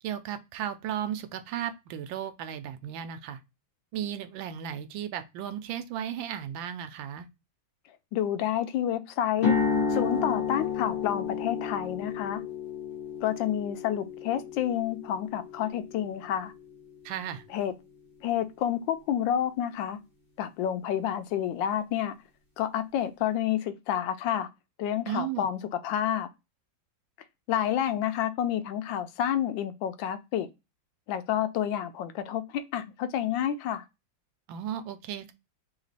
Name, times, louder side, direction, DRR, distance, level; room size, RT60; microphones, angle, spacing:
voice 1, 0.0-3.4 3.9-7.3 17.0-17.4 25.1-25.5 34.5-35.3, right 10 dB, 85° right, 1.4 m, -35 dB
voice 2, 8.1-9.6 9.9-12.4 13.2-16.5 17.5-17.7 18.2-20.0 20.4-22.2 22.6-24.5 24.8-26.3 27.5-30.5 31.1-33.8, left 10 dB, 80° left, 1.3 m, -29 dB
sound 1, 9.4-17.4, left 5 dB, 40° left, 1.4 m, -32 dB
3.5 x 2.9 x 4.0 m
omnidirectional pair, 2.1 m